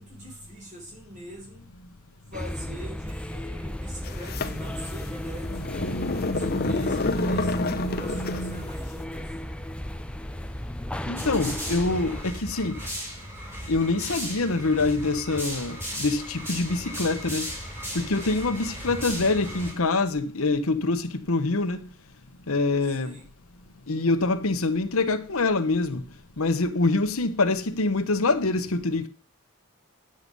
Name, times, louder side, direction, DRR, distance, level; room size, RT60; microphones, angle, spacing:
voice 1, 0.0-1.7 2.3-5.9 6.2-9.3 19.1-19.4 22.8-23.2, equal, 35° right, 4.5 m, -44 dB
sound 1, 2.3-12.2, left 1 dB, 5° left, 0.4 m, -35 dB
sound 2, 4.0-8.7, left 2 dB, 45° left, 0.9 m, -28 dB
voice 2, 11.1-12.8 13.7-17.5 17.9-21.9 22.5-23.2 23.9-26.0 26.4-29.1, left 3 dB, 75° left, 1.1 m, -25 dB
sound 3, 11.1-19.7, equal, 10° right, 5.0 m, -36 dB
10.0 x 7.7 x 5.3 m
head